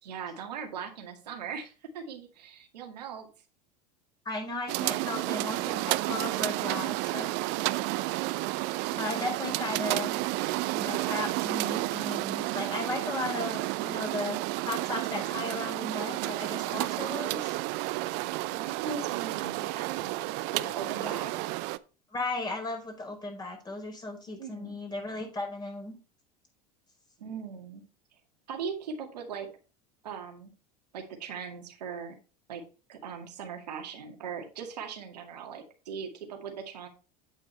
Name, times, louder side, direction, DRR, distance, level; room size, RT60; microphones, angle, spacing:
voice 1, 0.0-3.3 5.0-5.6 17.9-21.3 24.4-24.8 27.2-27.8 28.5-29.5 30.0-30.5 30.9-32.2 32.5-32.6 32.9-36.9, right 6 dB, 80° right, 3 dB, 2.1 m, -40 dB
voice 2, 4.2-7.4 8.9-10.2 10.7-17.5 21.0-21.2 22.1-25.9, left 2 dB, 20° left, 2 dB, 4.8 m, -36 dB
sound 1, 4.7-21.8, right 19 dB, 55° right, 0.6 m, -31 dB
8.9 x 8.4 x 3.2 m, 0.33 s
hypercardioid pair, 85°, 21 cm